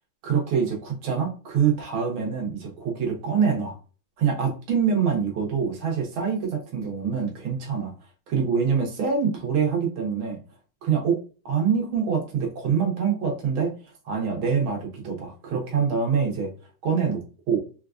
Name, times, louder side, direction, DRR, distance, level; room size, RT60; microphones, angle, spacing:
voice 1, 0.2-3.8 4.2-7.9 8.3-10.4 10.8-11.2 11.5-13.7 14.1-16.5 16.8-17.2 17.5-17.6, right 6 dB, 80° right, 0 dB, 1.9 m, -25 dB
4.4 x 2.4 x 2.3 m, 0.36 s
omnidirectional pair, 2.2 m